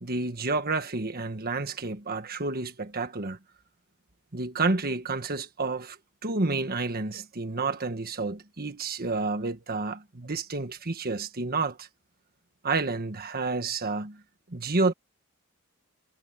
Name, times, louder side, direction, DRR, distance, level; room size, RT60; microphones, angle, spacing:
voice 1, 0.0-3.4 4.3-6.0 6.2-11.9 12.6-14.2 14.5-14.9, right 3 dB, 45° right, 1.5 m, -30 dB
head